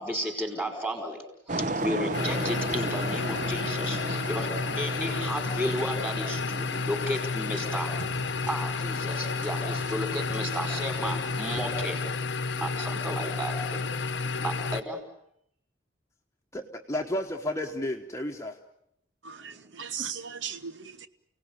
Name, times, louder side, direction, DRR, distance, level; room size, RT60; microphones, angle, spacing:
voice 1, 0.0-4.5 4.7-8.0 8.5-12.1 12.6-13.9 14.2-15.0 19.4-19.5, equal, 10° right, 4.9 m, -33 dB
sound 1, 1.5-11.8, right 2 dB, 40° right, 1.1 m, -37 dB
sound 2, 2.1-14.8, left 4 dB, 70° left, 1.0 m, -31 dB
voice 2, 16.5-18.6, left 1 dB, 15° left, 1.2 m, -32 dB
voice 3, 19.2-21.1, right 7 dB, 80° right, 1.0 m, -37 dB
29.5 x 18.5 x 9.6 m
head